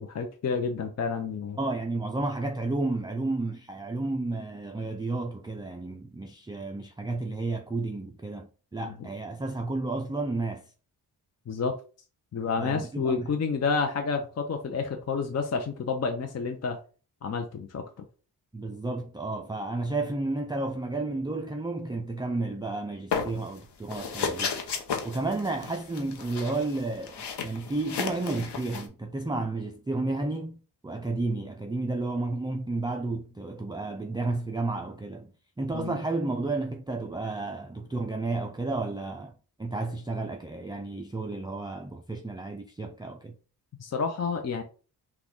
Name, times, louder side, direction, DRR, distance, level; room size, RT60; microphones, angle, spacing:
voice 1, 0.0-1.6 8.9-9.1 11.5-11.7 12.3-16.8 17.2-18.0 35.7-36.0 43.8-44.6, left 5 dB, 40° left, 0.6 m, -30 dB
voice 2, 1.6-10.6 12.6-13.3 18.5-24.6 25.0-39.3 39.6-43.4, right 2 dB, 10° right, 0.3 m, -32 dB
sound 1, 23.1-23.6 23.9-28.9, left 6 dB, 90° left, 0.9 m, -33 dB
6.1 x 2.4 x 3.6 m
wide cardioid pair, 130°, 39 cm